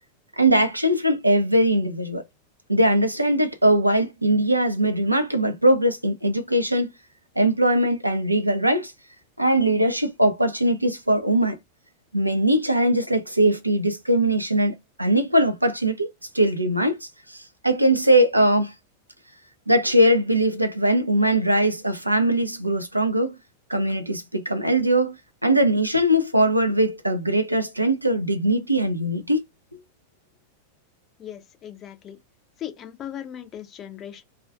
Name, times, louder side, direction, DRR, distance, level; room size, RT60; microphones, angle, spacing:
voice 1, 0.4-2.2 2.7-6.9 7.4-8.9 9.4-11.6 12.1-17.0 17.3-18.7 19.7-23.3 23.7-25.2 25.4-29.4, right 1 dB, 85° right, 0.4 m, -21 dB
voice 2, 31.2-32.2 32.6-34.2, left 10 dB, 30° left, 0.5 m, -38 dB
2.4 x 2.2 x 2.4 m
figure-of-eight pair, 90°, 0 cm